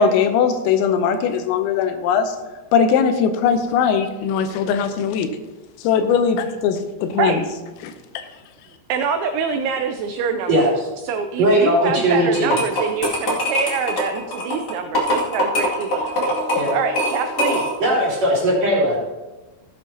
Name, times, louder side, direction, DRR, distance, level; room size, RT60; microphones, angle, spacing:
voice 1, 0.0-2.3 2.7-5.3 5.8-7.4 7.8-7.9, left 6 dB, 85° left, 8 dB, 3.4 m, -19 dB
voice 2, 8.9-10.7 11.0-17.7, right 6 dB, 85° right, 6 dB, 2.6 m, -25 dB
voice 3, 11.4-12.5 16.6-16.7 17.8-19.0, equal, 40° right, -6 dB, 3.6 m, -18 dB
sound 1, 12.3-17.9, equal, 50° left, 1.2 m, -23 dB
16.5 x 9.2 x 2.8 m, 1.2 s
omnidirectional pair, 6.0 m